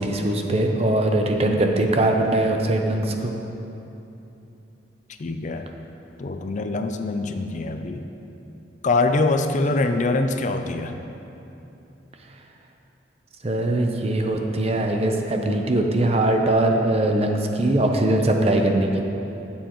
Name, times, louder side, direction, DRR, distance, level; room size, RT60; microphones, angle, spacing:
voice 1, 0.0-3.3 13.4-19.0, right 1 dB, 35° right, 3 dB, 0.7 m, -21 dB
voice 2, 5.2-5.7 6.2-8.0 8.8-11.0, left 2 dB, 45° left, 7 dB, 0.4 m, -24 dB
12.5 x 7.3 x 3.0 m, 2.9 s
head